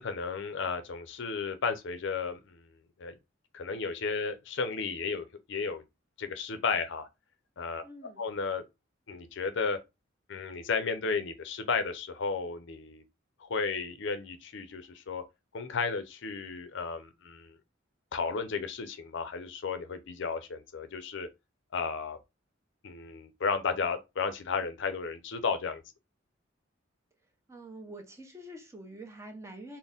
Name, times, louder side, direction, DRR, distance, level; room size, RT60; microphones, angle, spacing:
voice 1, 0.0-2.6 3.0-3.2 3.5-5.8 6.2-7.1 7.6-8.6 9.1-9.8 10.3-13.0 13.4-15.2 15.5-17.5 18.1-21.3 21.7-22.2 22.8-25.8, left 5 dB, 65° left, 0.6 m, -33 dB
voice 2, 7.8-8.2 27.5-29.8, right 1 dB, 15° right, 0.8 m, -46 dB
4.1 x 2.1 x 3.5 m
head